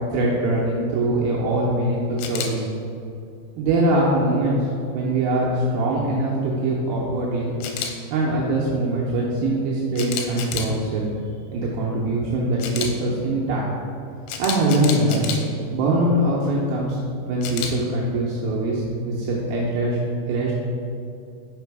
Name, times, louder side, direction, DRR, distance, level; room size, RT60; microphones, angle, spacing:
voice 1, 0.1-2.7 3.6-4.6 4.9-7.5 8.1-11.1 11.5-13.6 14.4-15.2 15.7-17.0 17.3-20.0 20.3-20.5, right 1 dB, 85° right, -4 dB, 2.1 m, -22 dB
Camera, 2.2-2.5 7.6-7.9 10.0-10.7 12.6-12.9 14.3-15.4 17.4-17.7, left 7 dB, 90° left, 2.9 m, -29 dB
6.2 x 5.2 x 4.7 m, 2.5 s
omnidirectional pair, 5.1 m